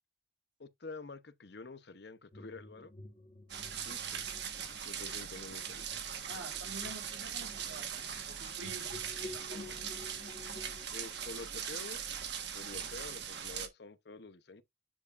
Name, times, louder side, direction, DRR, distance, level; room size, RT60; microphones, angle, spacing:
voice 1, 0.6-2.9 3.8-4.2 4.9-5.8 10.9-12.0 12.5-14.6, left 3 dB, 55° left, 0.8 m, -48 dB
sound 1, 2.3-10.8, left 2 dB, 40° left, 1.9 m, -52 dB
sound 2, 3.5-13.7, right 8 dB, 60° right, 1.3 m, -40 dB
voice 2, 6.3-8.9 9.3-9.8, right 3 dB, 80° right, 2.3 m, -48 dB
9.9 x 4.8 x 2.4 m
head